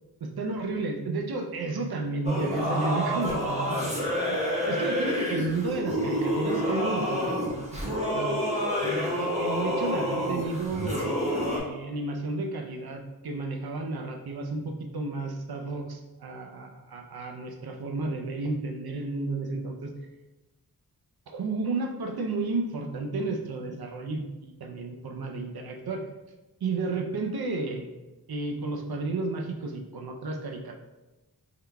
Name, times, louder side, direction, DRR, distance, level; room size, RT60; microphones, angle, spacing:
voice 1, 0.4-3.9 4.3-8.3 8.8-11.2 11.5-19.9 21.3-26.0 26.6-27.9 28.3-30.8, right 3 dB, 75° right, 2 dB, 0.6 m, -32 dB
Singing / Musical instrument, 2.2-11.6, equal, 20° right, 1.1 m, -28 dB
3.7 x 3.4 x 2.2 m, 1.1 s
cardioid pair, 50°, 38 cm